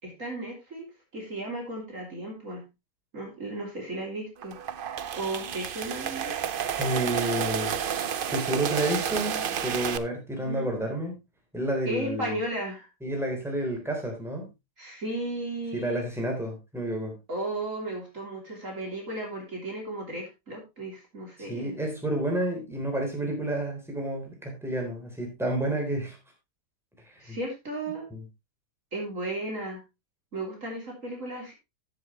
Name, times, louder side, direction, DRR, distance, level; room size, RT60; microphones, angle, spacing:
voice 1, 0.0-2.6 3.1-4.6 5.1-6.4 10.4-10.7 11.9-12.9 14.8-16.0 17.3-21.8 27.2-28.1 28.9-29.8 30.3-31.5, right 1 dB, 45° right, 0 dB, 3.6 m, -35 dB
sound 1, 4.4-10.0, right 8 dB, 80° right, 0.4 m, -30 dB
voice 2, 6.8-11.2 11.5-12.4 13.0-14.5 15.7-17.1 21.5-26.2 27.2-27.4 28.1-28.2, right 1 dB, ahead, 1 dB, 3.6 m, -30 dB
14.0 x 7.5 x 3.1 m, 0.24 s
omnidirectional pair, 1.8 m